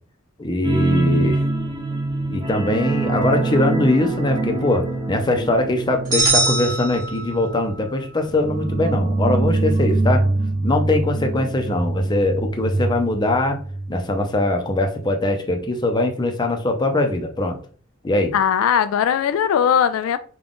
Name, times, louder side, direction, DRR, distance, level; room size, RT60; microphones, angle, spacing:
voice 1, 0.4-1.4 2.3-10.3 10.6-13.6 13.9-17.6 18.0-18.3, left 2 dB, 20° left, 0.5 m, -21 dB
sound 1, 0.6-13.9 14.2-14.4 14.8-14.9, right 2 dB, 20° right, 0.7 m, -24 dB
sound 2, 6.1-7.7, right 2 dB, 40° right, 1.8 m, -22 dB
voice 2, 18.3-20.2, left 8 dB, 85° left, 0.3 m, -19 dB
3.7 x 2.3 x 3.6 m
head